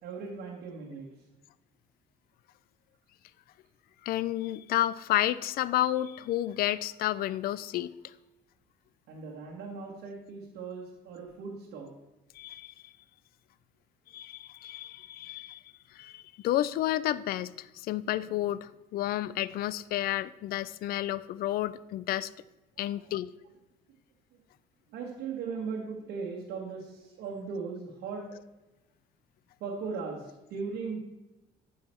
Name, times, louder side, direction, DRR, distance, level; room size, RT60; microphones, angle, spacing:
voice 1, 0.0-1.1 9.1-11.9 22.8-23.1 24.3-24.4 24.9-28.3 29.6-31.0, right 5 dB, 80° right, -2 dB, 1.4 m, -38 dB
voice 2, 4.0-7.9 12.3-12.9 14.1-15.6 15.9-22.3 22.8-23.3, left 13 dB, 60° left, 18 dB, 0.4 m, -31 dB
8.9 x 5.7 x 4.4 m, 1.0 s
cardioid pair, 110°, 17 cm